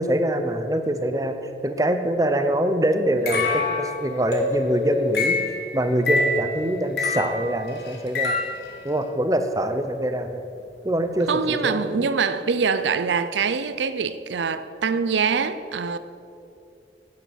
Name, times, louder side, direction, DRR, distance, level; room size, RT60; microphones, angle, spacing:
voice 1, 0.0-1.4 1.6-5.4 5.7-8.4 8.8-10.4 10.8-11.9, right 1 dB, 20° right, 0.7 m, -24 dB
sound 1, 3.3-8.7, left 3 dB, 65° left, 1.7 m, -26 dB
voice 2, 11.3-16.0, right 5 dB, 85° right, 0.5 m, -24 dB
10.0 x 8.7 x 6.9 m
head